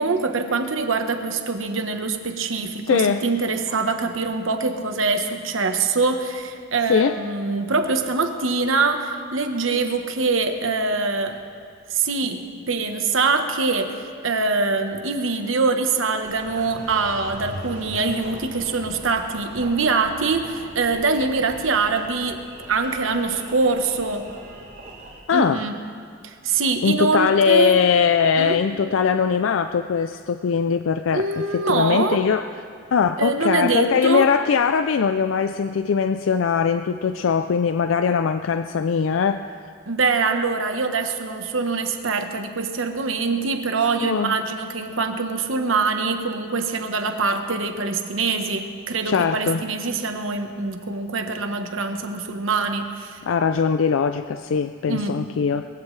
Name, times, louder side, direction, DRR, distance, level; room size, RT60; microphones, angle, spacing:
voice 1, 0.0-11.4 11.9-14.0 14.2-22.4 22.7-24.3 25.3-25.8 26.2-27.8 28.4-28.6 31.1-32.2 33.2-34.2 39.9-53.2 54.9-55.2, right 4 dB, 80° right, 6 dB, 1.1 m, -24 dB
voice 2, 2.9-3.2 6.9-7.2 25.3-25.6 26.8-32.5 32.9-39.6 44.0-44.3 49.0-49.6 53.2-55.7, left 6 dB, 75° left, 9 dB, 0.4 m, -21 dB
Engine, 16.2-25.2, right 1 dB, 55° right, 3.2 m, -40 dB
21.5 x 15.5 x 3.3 m, 2.2 s
head